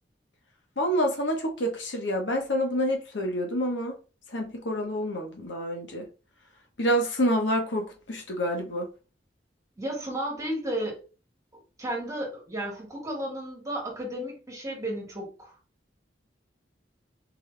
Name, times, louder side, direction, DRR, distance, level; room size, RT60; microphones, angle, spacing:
voice 1, 0.8-4.0 4.3-6.1 6.8-8.9, equal, 80° left, 1.1 m, -27 dB
voice 2, 9.8-11.0 11.8-15.5, right 1 dB, 20° right, 1.9 m, -33 dB
4.3 x 3.2 x 3.3 m
head